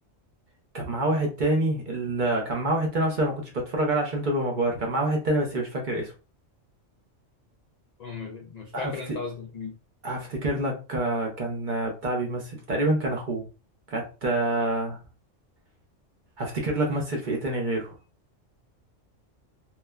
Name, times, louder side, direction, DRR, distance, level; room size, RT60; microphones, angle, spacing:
voice 1, 0.7-6.1 8.7-9.2 10.0-13.4 13.9-15.0 16.4-17.9, right 1 dB, 50° right, 0.7 m, -27 dB
voice 2, 8.0-9.7, left 4 dB, 85° left, 0.3 m, -36 dB
3.0 x 2.1 x 2.2 m
omnidirectional pair, 1.3 m